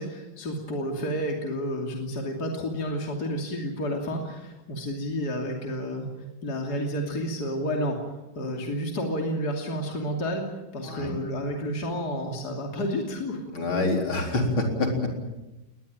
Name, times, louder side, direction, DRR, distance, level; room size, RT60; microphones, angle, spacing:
voice 1, 0.0-6.1 6.4-10.5 10.7-13.4 14.2-14.3, equal, 50° left, 1 dB, 3.4 m, -30 dB
voice 2, 13.5-15.1, left 2 dB, 75° left, 2 dB, 4.8 m, -26 dB
20.5 x 20.0 x 9.0 m, 1.0 s
omnidirectional pair, 2.3 m